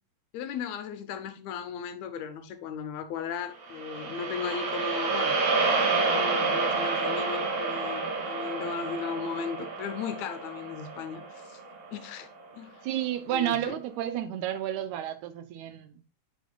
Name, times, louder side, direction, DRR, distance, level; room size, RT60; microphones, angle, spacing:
voice 1, 0.3-11.6 11.9-12.3 12.5-12.8 13.3-13.7, left 7 dB, 75° left, 1.9 m, -36 dB
sound 1, 3.6-12.0, right 4 dB, 60° right, 2.1 m, -29 dB
voice 2, 12.8-16.0, right 11 dB, 85° right, 2.0 m, -31 dB
7.9 x 5.2 x 2.3 m
omnidirectional pair, 3.3 m